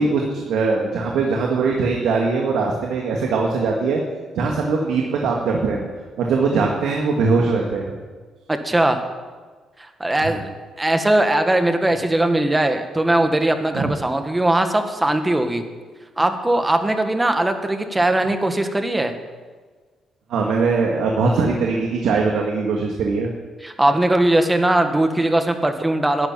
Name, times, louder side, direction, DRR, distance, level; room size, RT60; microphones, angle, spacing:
voice 1, 0.0-4.0 4.4-5.8 6.2-7.9 10.2-10.4 13.7-13.9 20.3-23.3, right 4 dB, 80° right, 0 dB, 1.9 m, -21 dB
voice 2, 8.5-9.0 9.8-10.4 10.8-15.6 16.2-19.1 23.6-26.3, right 1 dB, 15° right, 7 dB, 1.7 m, -19 dB
12.0 x 10.5 x 8.9 m, 1.4 s
cardioid pair, 90°, 0 cm